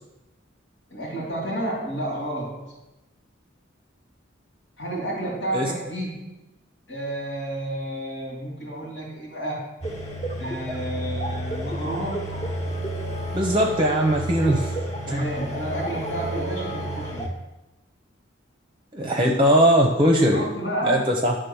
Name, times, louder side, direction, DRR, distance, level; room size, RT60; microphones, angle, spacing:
voice 1, 0.9-2.8 4.8-6.4 6.9-9.7 10.4-12.4 15.1-17.4 20.3-21.1, right 1 dB, 75° left, -5 dB, 2.7 m, -30 dB
sound 1, 9.8-17.3, right 1 dB, 35° left, 1.4 m, -30 dB
voice 2, 13.3-14.7 15.1-15.2 18.9-20.4 20.8-21.3, equal, 25° right, 1 dB, 0.7 m, -20 dB
11.0 x 3.7 x 6.9 m, 0.99 s
head